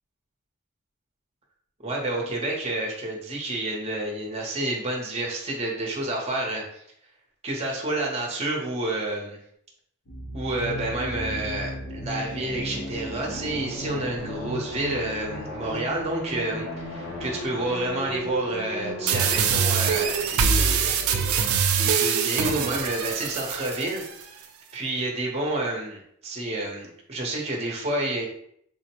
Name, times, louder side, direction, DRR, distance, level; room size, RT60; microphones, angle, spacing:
voice 1, 1.8-6.8 7.4-9.4 10.3-24.0 24.3-24.4 24.7-28.3, right 2 dB, 30° right, -1 dB, 0.7 m, -29 dB
sound 1, 10.1-21.6, equal, 70° left, 0.8 m, -36 dB
sound 2, 19.1-24.1, right 6 dB, 85° right, 0.4 m, -24 dB
3.8 x 2.1 x 2.9 m, 0.68 s
head